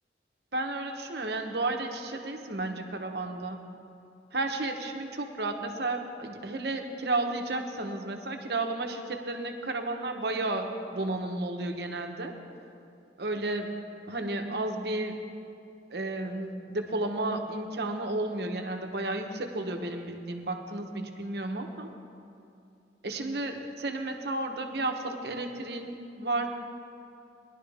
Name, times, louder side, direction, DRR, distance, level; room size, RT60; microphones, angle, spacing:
voice 1, 0.5-3.6 4.3-12.3 13.2-13.7 14.1-15.2 15.9-21.9 23.0-26.5, right 2 dB, 65° right, 4 dB, 1.1 m, -32 dB
20.0 x 11.5 x 3.5 m, 2.7 s
head